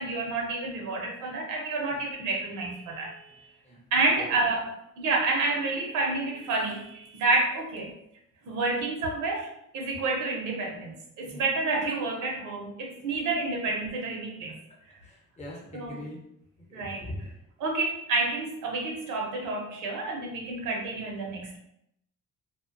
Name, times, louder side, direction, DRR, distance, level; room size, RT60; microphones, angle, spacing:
voice 1, 0.0-3.5 3.9-4.7 5.0-7.9 8.4-14.6 15.7-16.0 16.7-17.1 17.6-21.6, right 3 dB, 90° right, 0 dB, 0.6 m, -29 dB
voice 2, 15.0-16.2 16.7-17.3, left 1 dB, 25° left, -2 dB, 0.7 m, -41 dB
2.4 x 2.1 x 2.4 m, 0.78 s
cardioid pair, 90°, 30 cm